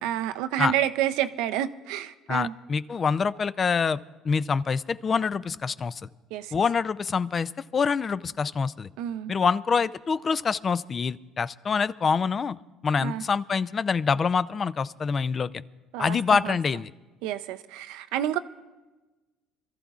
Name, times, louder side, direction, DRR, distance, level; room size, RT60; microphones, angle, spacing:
voice 1, 0.0-2.5 6.3-6.5 9.0-9.3 13.0-13.2 15.9-16.2 16.4-16.5 17.2-18.4, right 12 dB, 80° right, 11 dB, 0.5 m, -29 dB
voice 2, 2.3-4.0 4.2-6.0 6.5-8.9 9.3-12.6 12.8-15.6 16.0-16.9, left 5 dB, 35° left, 17 dB, 0.4 m, -26 dB
25.5 x 14.0 x 2.4 m, 1.2 s
cardioid pair, 105°, 0 cm